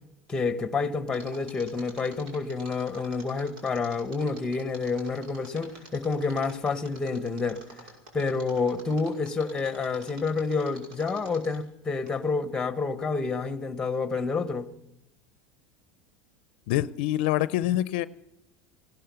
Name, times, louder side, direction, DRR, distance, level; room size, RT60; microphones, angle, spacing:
voice 1, 0.3-7.6 8.1-14.7, left 4 dB, 10° left, 1.2 m, -29 dB
Mechanisms, 1.1-11.7 12.1-12.2, right 2 dB, 70° right, 5.9 m, -47 dB
voice 2, 16.7-18.1, left 14 dB, 70° left, 0.6 m, -25 dB
16.5 x 12.5 x 6.9 m
supercardioid pair, 130°, 5 cm